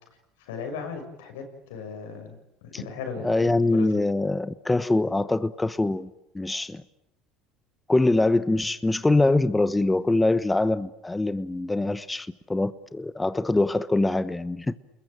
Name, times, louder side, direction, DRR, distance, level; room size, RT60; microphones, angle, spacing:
voice 1, 0.4-1.4 1.7-4.0, left 5 dB, 85° left, 5 dB, 6.6 m, -37 dB
voice 2, 3.2-6.1 6.3-6.8 7.9-14.7, left 2 dB, 10° left, 13 dB, 1.1 m, -23 dB
29.0 x 21.5 x 9.0 m, 0.85 s
supercardioid pair, 90°, 0 cm